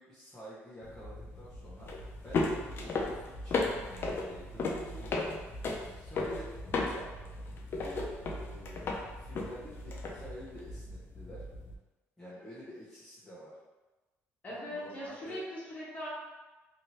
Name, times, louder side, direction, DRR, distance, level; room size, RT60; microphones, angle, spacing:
voice 1, 0.0-1.9 2.2-5.2 5.8-7.2 7.8-11.4 12.2-13.6 14.5-15.4, equal, 10° left, -11 dB, 0.9 m, -49 dB
sound 1, 0.8-11.7, left 3 dB, 50° left, 0.5 m, -36 dB
voice 2, 14.4-16.1, equal, 30° left, -7 dB, 1.3 m, -40 dB
2.9 x 2.6 x 3.0 m, 1.1 s
cardioid pair, 125°, 5 cm